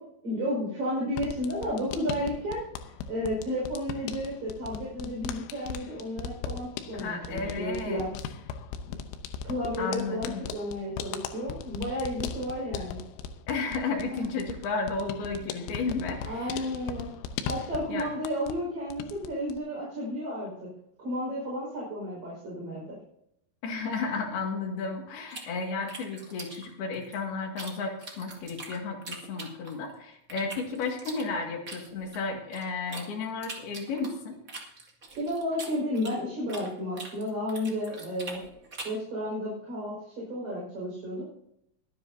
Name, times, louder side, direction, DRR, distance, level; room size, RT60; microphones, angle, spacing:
voice 1, 0.2-2.6 3.1-8.1 9.4-13.0 14.1-14.3 16.2-17.1 17.4-20.7 21.0-23.0 35.1-38.4 38.8-41.3, equal, 35° right, -6 dB, 6.4 m, -32 dB
sound 1, 1.1-18.6 18.9-19.6, left 7 dB, 90° left, 3.6 m, -38 dB
voice 2, 6.9-8.0 9.8-10.4 13.5-16.7 17.9-18.1 23.6-34.3, left 4 dB, 55° left, 2 dB, 3.6 m, -33 dB
sound 2, 25.3-27.7 28.0-29.9 30.3-33.0 33.4-36.7 36.9-39.0, right 3 dB, 60° right, 0.8 m, -42 dB
23.0 x 10.0 x 2.8 m, 0.76 s
omnidirectional pair, 6.0 m